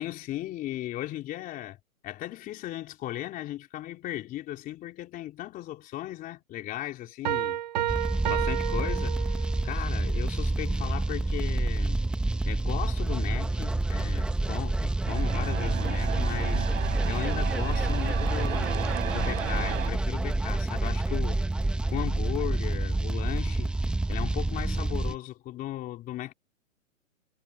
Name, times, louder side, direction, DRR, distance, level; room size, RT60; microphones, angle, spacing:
voice 1, 0.0-1.8 2.0-7.6 8.2-12.0 12.4-21.4 21.9-23.7 24.1-26.3, left 14 dB, 20° left, 3.3 m, -37 dB
sound 1, 7.2-9.7, right 11 dB, 30° right, 0.5 m, -31 dB
sound 2, 7.9-25.2, right 2 dB, ahead, 1.1 m, -28 dB
sound 3, 15.0-19.9, right 10 dB, 60° right, 5.9 m, -35 dB
hypercardioid pair, 145°, 42 cm